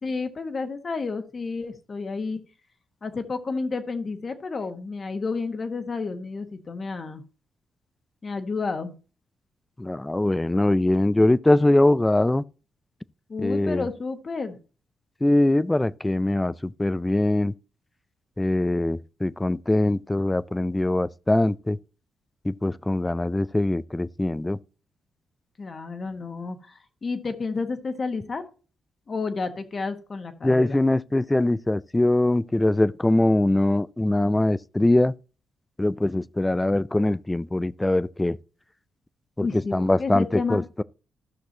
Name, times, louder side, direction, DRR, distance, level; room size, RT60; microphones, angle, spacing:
voice 1, 0.0-2.4 3.0-7.2 8.2-8.9 13.3-14.6 25.6-28.4 29.1-30.8 39.4-40.6, left 4 dB, 40° left, 1.4 m, -31 dB
voice 2, 9.8-12.4 13.4-13.9 15.2-17.5 18.4-21.8 22.4-24.6 30.4-35.1 35.8-38.4 39.4-39.5 39.7-40.8, left 1 dB, 10° left, 0.4 m, -22 dB
14.5 x 6.1 x 2.9 m
cardioid pair, 90°, 0 cm